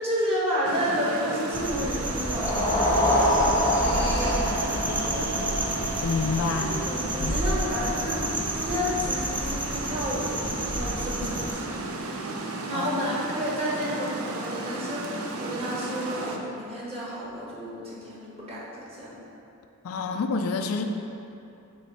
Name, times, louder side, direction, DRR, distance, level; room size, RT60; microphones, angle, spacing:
voice 1, 0.0-5.8 6.5-11.9 12.7-19.2, equal, 30° right, -6 dB, 1.3 m, -31 dB
Water, 0.6-16.4, right 2 dB, 75° right, 0.6 m, -34 dB
sound 1, 1.5-11.5, right 1 dB, 5° right, 0.4 m, -31 dB
sound 2, 2.3-8.5, left 1 dB, 15° left, 0.7 m, -27 dB
voice 2, 6.0-6.7 7.2-7.4 12.7-12.9 19.8-20.8, left 4 dB, 75° left, 5 dB, 0.4 m, -28 dB
7.7 x 3.1 x 5.5 m, 2.7 s
head